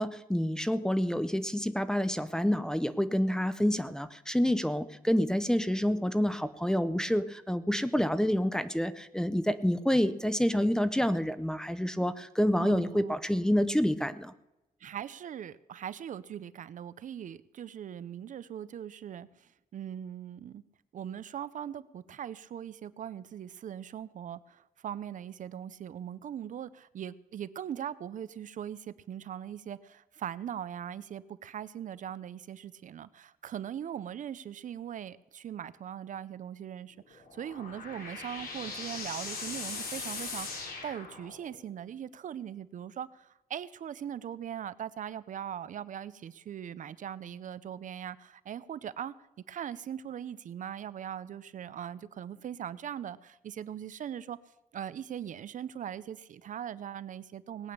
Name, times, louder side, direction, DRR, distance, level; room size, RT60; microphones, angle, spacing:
voice 1, 0.0-14.3, equal, 5° left, 13 dB, 0.6 m, -28 dB
voice 2, 12.6-13.2 14.8-20.6 20.9-49.1 49.5-54.4 54.7-57.7, right 9 dB, 60° right, 16 dB, 0.5 m, -40 dB
sound 1, 37.1-41.7, left 4 dB, 80° left, 3.6 m, -40 dB
19.0 x 8.8 x 6.6 m, 0.97 s
wide cardioid pair, 150°, 15 cm